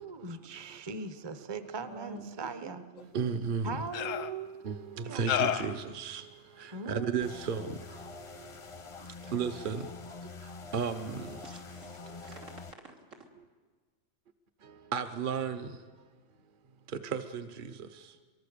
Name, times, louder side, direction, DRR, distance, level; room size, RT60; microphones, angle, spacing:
voice 1, 0.0-2.8 3.6-5.3 6.7-7.2 8.0-9.0, right 4 dB, 25° right, 0.8 m, -41 dB
voice 2, 1.9-3.4 11.4-13.3, right 4 dB, 80° right, 3.5 m, -49 dB
sound 1, 3.0-3.1 3.9-4.3 5.3-5.8, left 10 dB, 90° left, 1.3 m, -30 dB
voice 3, 3.1-3.8 4.6-6.3 6.6-7.8 9.3-9.9 10.7-11.4 14.9-15.8 16.9-17.9, right 6 dB, 45° right, 1.0 m, -33 dB
sound 2, 7.2-12.7, left 4 dB, 35° left, 0.6 m, -46 dB
23.5 x 23.0 x 6.8 m
omnidirectional pair, 1.3 m